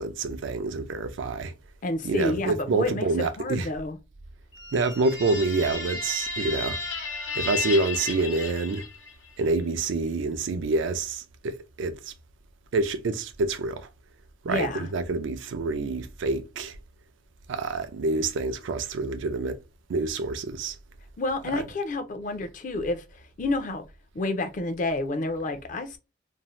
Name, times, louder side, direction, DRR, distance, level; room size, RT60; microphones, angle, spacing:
voice 1, 0.0-1.5 2.0-3.7 4.7-6.8 7.4-8.9 9.4-12.1 12.7-13.9 14.4-16.8 17.5-19.6 19.9-20.8 21.5-21.6, right 3 dB, 75° right, 0.4 m, -27 dB
voice 2, 1.8-4.0 14.5-14.9 21.2-23.8 24.1-26.0, left 2 dB, 40° left, 0.4 m, -29 dB
sound 1, 4.5-9.3, left 4 dB, 70° left, 0.9 m, -33 dB
2.6 x 2.0 x 3.0 m
head